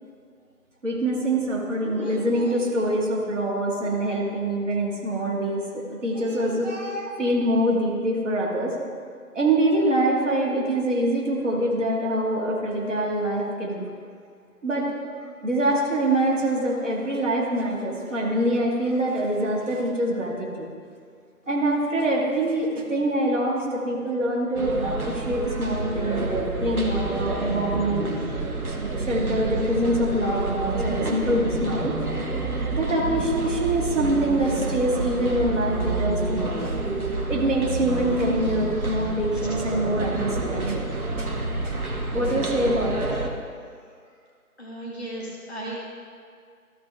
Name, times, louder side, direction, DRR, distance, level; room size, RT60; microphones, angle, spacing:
voice 1, 0.8-8.8 9.3-13.9 14.6-14.9 15.4-20.7 21.5-28.1 28.7-31.9 32.7-36.7 37.3-40.8 41.2-41.3 41.6-41.8 42.1-43.2, right 1 dB, 55° right, -3 dB, 2.1 m, -25 dB
sound 1, 24.5-43.3, right 3 dB, 75° right, 1.3 m, -28 dB
voice 2, 44.6-45.8, right 1 dB, 5° right, -3 dB, 1.1 m, -35 dB
13.5 x 5.1 x 3.5 m, 2.1 s
figure-of-eight pair, 155°, 44 cm